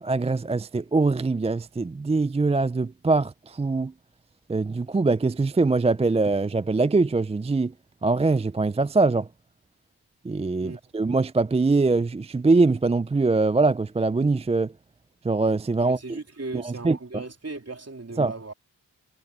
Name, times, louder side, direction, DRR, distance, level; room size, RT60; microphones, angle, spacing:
voice 1, 0.0-3.9 4.5-7.7 8.0-9.3 10.2-14.7 15.2-16.2 16.5-17.2 18.2-18.3, right 3 dB, 15° right, 0.4 m, -23 dB
voice 2, 15.8-18.5, right 3 dB, 40° right, 3.7 m, -37 dB
cardioid pair, 45°, 40 cm